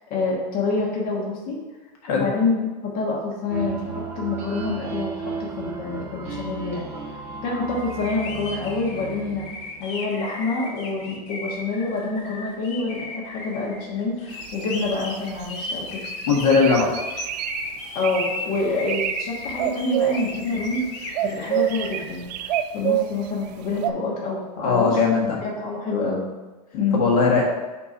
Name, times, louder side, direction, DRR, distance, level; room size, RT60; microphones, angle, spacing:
voice 1, 0.1-1.6 2.1-6.9 7.4-16.0 17.9-20.8 21.2-25.0 25.3-26.3 26.7-27.0, left 3 dB, 50° left, -4 dB, 1.3 m, -27 dB
sound 1, 3.5-10.1, right 4 dB, 10° right, 1.3 m, -34 dB
sound 2, 7.8-22.1, left 3 dB, 30° left, 1.0 m, -36 dB
sound 3, 14.4-15.6 16.0-17.6 18.0-18.4 18.7-19.2 19.5-20.8 21.1-23.2 23.8-23.9, right 13 dB, 85° right, 0.4 m, -26 dB
voice 2, 16.3-16.9 24.6-25.3 26.9-27.4, left 4 dB, 65° left, -2 dB, 1.5 m, -19 dB
4.4 x 4.1 x 5.2 m, 1.2 s
supercardioid pair, 150°, 20 cm